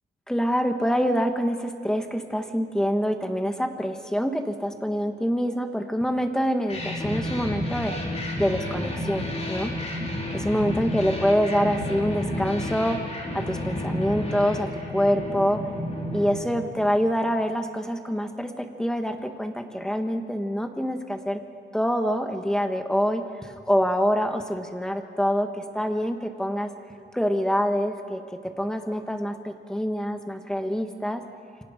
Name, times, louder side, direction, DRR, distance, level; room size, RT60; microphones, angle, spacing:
voice 1, 0.3-7.9 8.4-9.7 10.3-13.0 13.3-15.6 16.1-21.4 21.7-26.7 27.1-31.2, equal, 5° left, 5 dB, 1.6 m, -26 dB
sound 1, 6.7-17.2, left 1 dB, 35° left, 3.5 m, -31 dB
28.0 x 25.0 x 5.2 m, 2.5 s
wide cardioid pair, 145°, 19 cm